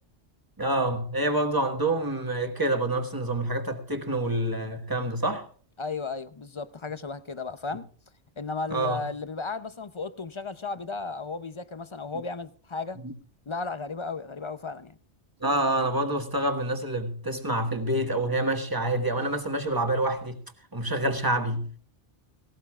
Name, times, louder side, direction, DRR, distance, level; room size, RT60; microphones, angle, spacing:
voice 1, 0.6-5.5 8.7-9.0 13.0-13.1 15.4-20.4 20.7-21.7, right 1 dB, 20° right, 1.6 m, -27 dB
voice 2, 5.8-7.9 8.4-13.0 13.5-14.9, left 4 dB, 30° left, 0.6 m, -34 dB
18.0 x 17.5 x 2.4 m
omnidirectional pair, 1.1 m